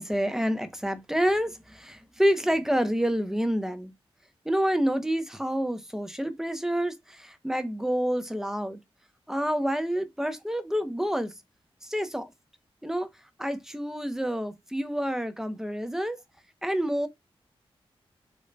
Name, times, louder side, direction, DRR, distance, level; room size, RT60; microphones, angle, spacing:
voice 1, 0.0-3.9 4.4-8.8 9.3-11.3 11.8-12.3 12.8-13.1 13.4-16.2 16.6-17.1, equal, 5° right, 0.5 m, -28 dB
3.9 x 2.1 x 3.1 m
wide cardioid pair, 90°, 10 cm